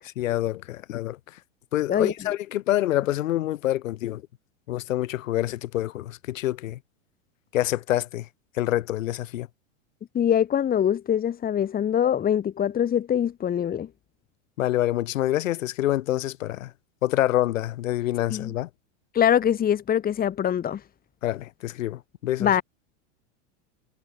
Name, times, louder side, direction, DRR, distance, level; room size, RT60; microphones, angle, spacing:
voice 1, 0.2-1.2 1.7-4.2 4.7-6.8 7.5-8.3 8.6-9.5 14.6-16.7 17.0-18.7 21.2-22.6, left 14 dB, 80° left, 5.5 m, -26 dB
voice 2, 10.1-13.9 18.3-18.5 19.1-20.8 22.4-22.6, left 9 dB, 25° left, 3.0 m, -23 dB
supercardioid pair, 140°, 39 cm